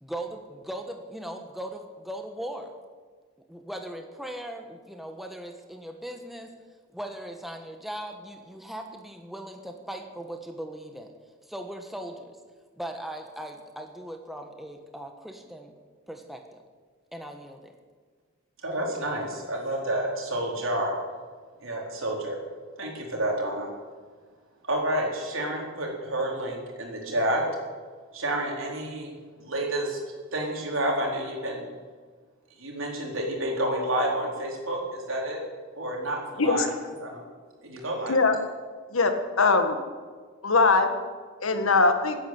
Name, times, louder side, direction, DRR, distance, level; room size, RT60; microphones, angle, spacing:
voice 1, 0.0-2.7 3.5-6.5 6.9-11.1 11.5-12.4 12.8-15.7 16.1-16.6 17.1-17.7, right 1 dB, ahead, 4 dB, 1.2 m, -39 dB
voice 2, 18.6-21.0 21.6-22.4 22.8-23.7 24.7-27.4 28.1-30.0 30.3-31.6 32.6-35.4 35.8-36.7 37.0-37.2 37.6-38.2, right 1 dB, 75° right, -1 dB, 4.3 m, -29 dB
voice 3, 38.9-39.8 40.4-40.9 41.4-42.2, left 3 dB, 80° left, 7 dB, 1.8 m, -21 dB
16.0 x 10.0 x 9.1 m, 1.5 s
head